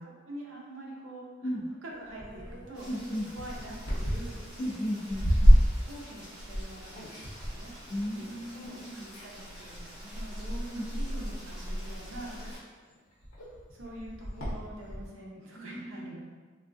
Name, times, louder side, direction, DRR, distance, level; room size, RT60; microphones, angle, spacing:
voice 1, 0.0-1.5 1.8-2.9 3.4-4.4 5.1-5.2 5.8-7.7 8.1-12.4 13.7-16.2, right 1 dB, 75° right, -3 dB, 0.6 m, -45 dB
sound 1, 1.9-8.7 9.1-9.8 10.7-11.0 11.6-11.7 11.9-15.1, equal, 70° left, 0.8 m, -28 dB
Rain, 2.7-12.6, equal, 5° right, 0.7 m, -42 dB
voice 2, 2.9-3.3 4.6-5.6 7.9-9.0 10.7-10.8 12.4-12.5 15.6-16.1, equal, 25° left, -7 dB, 0.3 m, -35 dB
3.3 x 2.3 x 2.5 m, 1.4 s
head